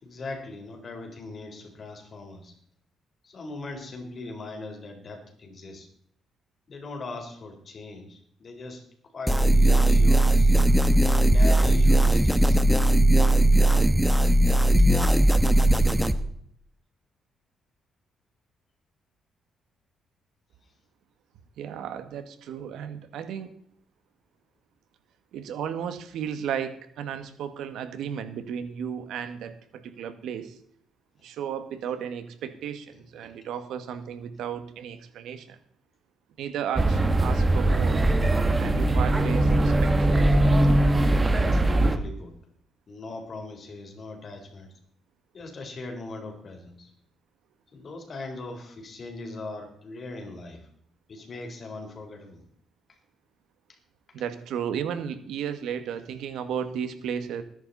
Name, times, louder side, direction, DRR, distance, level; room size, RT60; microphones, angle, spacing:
voice 1, 0.0-2.5 3.2-5.9 6.7-8.8 9.1-10.6 11.1-12.6 14.8-14.9 33.2-33.3 41.3-42.3 42.9-44.7 45.3-46.9 47.7-50.7 51.1-52.4, left 2 dB, 45° left, 4 dB, 4.2 m, -39 dB
sound 1, 9.3-16.1, right 1 dB, 5° right, 1.3 m, -19 dB
voice 2, 21.6-23.5 25.3-30.6 31.2-35.6 36.4-38.0 38.6-40.3 54.1-57.4, right 8 dB, 80° right, 9 dB, 1.8 m, -34 dB
sound 2, 36.8-42.0, right 1 dB, 25° right, 1.6 m, -21 dB
20.0 x 10.5 x 4.2 m, 0.66 s
cardioid pair, 90°, 0 cm